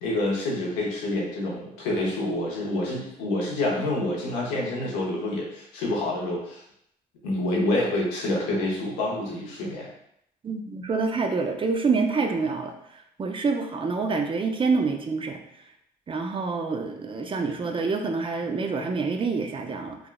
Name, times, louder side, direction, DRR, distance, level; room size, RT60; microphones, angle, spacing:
voice 1, 0.0-6.6 7.2-9.9, left 1 dB, 90° left, -3 dB, 0.8 m, -27 dB
voice 2, 10.4-12.7 13.2-15.4 16.1-20.0, right 4 dB, 30° right, 4 dB, 0.4 m, -27 dB
3.3 x 2.3 x 2.3 m, 0.73 s
supercardioid pair, 60°, 17 cm